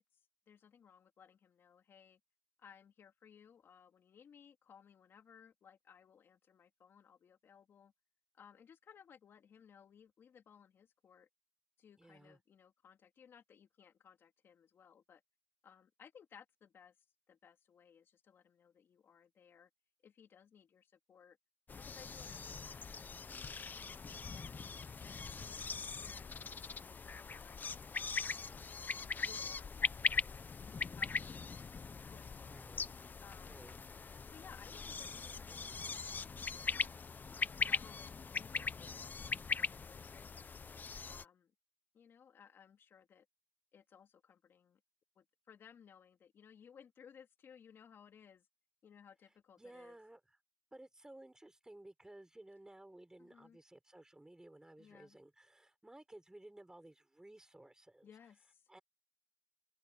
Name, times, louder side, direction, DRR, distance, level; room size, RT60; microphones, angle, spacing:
voice 1, 0.0-2.2 2.6-7.9 8.3-11.3 11.8-15.2 15.6-17.0 17.3-19.7 20.0-21.4 21.8-24.6 25.0-28.7 29.2-31.7 32.0-32.6 33.2-33.7 34.3-36.9 37.3-40.5 41.0-41.5 41.9-43.3 43.7-44.8 45.1-48.5 48.8-50.0 53.2-53.6 54.8-55.2 58.0-58.7, left 7 dB, 75° left, 2.8 m, -61 dB
voice 2, 12.0-12.4 22.3-22.6 32.5-32.9 33.5-33.8 49.6-50.4 50.7-58.1 58.7-58.8, right 1 dB, 15° right, 5.7 m, -57 dB
sound 1, 21.7-41.2, left 5 dB, 50° left, 1.0 m, -41 dB
open air
supercardioid pair, 50°, 4 cm